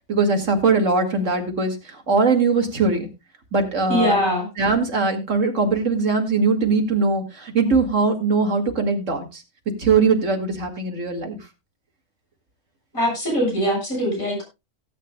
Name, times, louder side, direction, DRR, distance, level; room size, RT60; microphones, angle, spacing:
voice 1, 0.1-3.1 3.5-4.2 4.6-9.4 9.8-11.4, right 4 dB, 65° right, 4 dB, 2.4 m, -21 dB
voice 2, 3.9-4.5 12.9-14.4, equal, 80° left, -1 dB, 7.5 m, -22 dB
18.0 x 9.2 x 2.2 m, 0.24 s
omnidirectional pair, 1.4 m